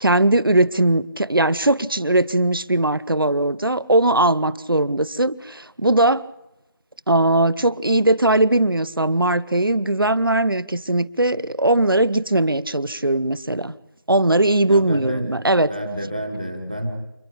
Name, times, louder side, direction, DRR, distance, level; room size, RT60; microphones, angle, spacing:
voice 1, 0.0-6.2 7.1-13.7 14.1-15.7, right 1 dB, 85° right, 19 dB, 0.9 m, -19 dB
voice 2, 14.6-15.3 15.7-16.9, equal, 20° right, 3 dB, 1.6 m, -29 dB
28.0 x 10.5 x 10.0 m, 0.91 s
figure-of-eight pair, 180°, 11 cm